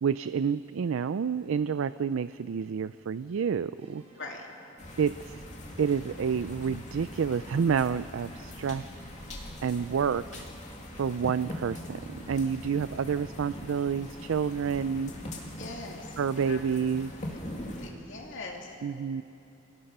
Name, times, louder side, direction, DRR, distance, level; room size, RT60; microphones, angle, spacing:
voice 1, 0.0-4.0 5.0-5.4 5.8-8.9 9.6-10.5 11.0-15.1 16.2-17.1 18.8-19.2, right 6 dB, 75° right, 14 dB, 0.4 m, -29 dB
sound 1, 3.7-13.8, right 1 dB, 30° right, 5.3 m, -61 dB
sound 2, 4.8-17.9, left 1 dB, 35° left, 2.4 m, -42 dB
voice 2, 15.6-16.6 17.8-18.8, left 3 dB, 65° left, 0 dB, 2.9 m, -42 dB
28.5 x 18.0 x 5.5 m, 2.8 s
head